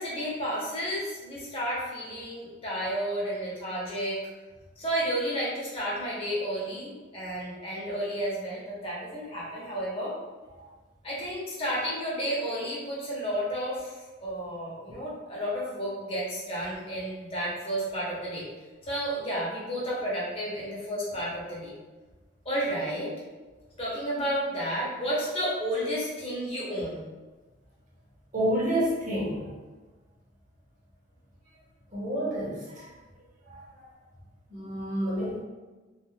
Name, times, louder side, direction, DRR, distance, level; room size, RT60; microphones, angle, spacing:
voice 1, 0.0-4.2 4.8-10.2 11.0-18.4 18.8-21.7 22.4-23.1 23.8-27.0, equal, 30° left, -6 dB, 0.7 m, -32 dB
voice 2, 28.3-29.5 31.9-32.9 33.5-33.9 34.5-35.4, equal, 40° right, -6 dB, 0.8 m, -29 dB
2.3 x 2.0 x 3.0 m, 1.2 s
head